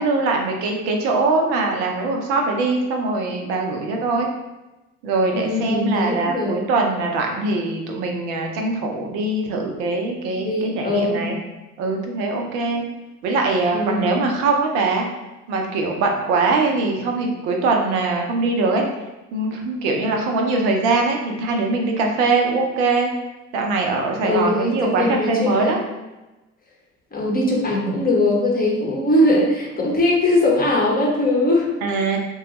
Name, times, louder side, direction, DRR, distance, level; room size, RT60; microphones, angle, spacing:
voice 1, 0.0-4.3 5.0-11.4 11.8-12.8 13.2-15.0 15.5-18.8 19.3-23.1 23.5-25.8 31.8-32.2, right 3 dB, 60° right, 2 dB, 0.7 m, -22 dB
voice 2, 5.3-6.6 10.4-11.2 13.7-14.1 24.2-25.8 27.1-31.7, left 1 dB, 20° left, -3 dB, 0.8 m, -20 dB
3.4 x 2.3 x 3.0 m, 1.0 s
figure-of-eight pair, 55°, 40 cm